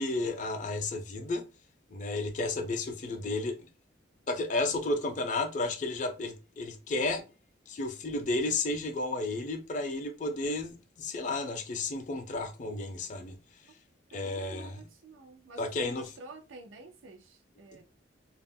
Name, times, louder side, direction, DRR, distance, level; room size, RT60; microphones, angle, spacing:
voice 1, 0.0-1.4 1.9-3.6 4.3-7.2 7.7-13.4 14.1-14.9 15.6-16.1, left 2 dB, 40° left, 0.4 m, -32 dB
voice 2, 14.1-17.8, right 3 dB, 90° right, 0.6 m, -50 dB
2.4 x 2.0 x 3.4 m
head